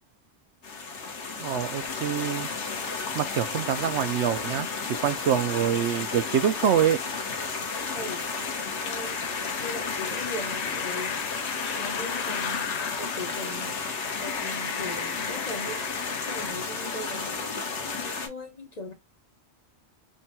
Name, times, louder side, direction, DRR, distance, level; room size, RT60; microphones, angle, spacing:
sound 1, 0.6-18.3, left 4 dB, 85° left, 1.2 m, -33 dB
voice 1, 1.4-2.5 3.1-4.7 5.0-7.0, right 9 dB, 80° right, 0.9 m, -25 dB
sound 2, 1.5-16.5, left 7 dB, 55° left, 0.4 m, -38 dB
voice 2, 7.9-8.3 8.8-9.2 9.6-11.2 11.8-12.7 13.0-13.7 14.2-18.9, left 1 dB, 40° left, 1.0 m, -39 dB
3.6 x 2.2 x 4.1 m
omnidirectional pair, 1.1 m